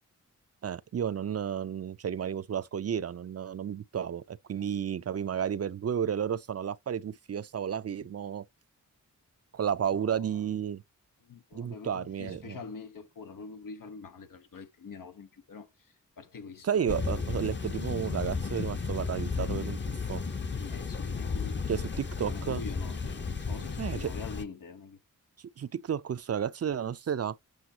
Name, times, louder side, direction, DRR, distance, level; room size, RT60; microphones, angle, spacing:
voice 1, 0.6-8.4 9.5-10.8 11.5-12.6 16.6-20.2 21.7-22.6 23.8-24.1 25.6-27.4, right 8 dB, 50° right, 0.5 m, -32 dB
voice 2, 9.9-10.4 11.2-17.3 20.6-25.0, left 5 dB, 85° left, 1.2 m, -45 dB
sound 1, 16.9-24.4, left 4 dB, 35° left, 0.9 m, -34 dB
7.9 x 6.4 x 2.9 m
wide cardioid pair, 125°, 32 cm